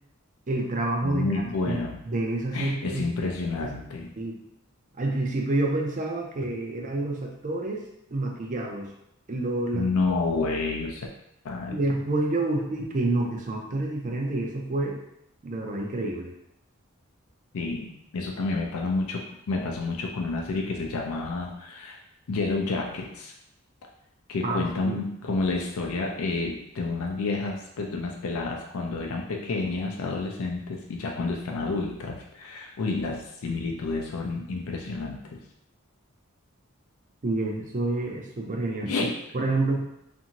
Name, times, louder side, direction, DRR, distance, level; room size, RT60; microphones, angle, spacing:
voice 1, 0.5-1.8 2.0-3.0 3.6-3.7 4.2-4.4 5.0-8.9 9.3-9.9 11.7-15.0 15.4-16.3 24.4-25.0 37.2-39.1 39.3-39.9, right 2 dB, 35° right, 0 dB, 0.5 m, -28 dB
voice 2, 1.0-2.0 2.5-4.1 9.7-11.1 11.4-11.8 17.5-22.0 22.3-23.3 24.3-35.4 38.9-39.1, left 3 dB, 80° left, 1 dB, 0.4 m, -29 dB
2.6 x 2.6 x 2.8 m, 0.79 s
head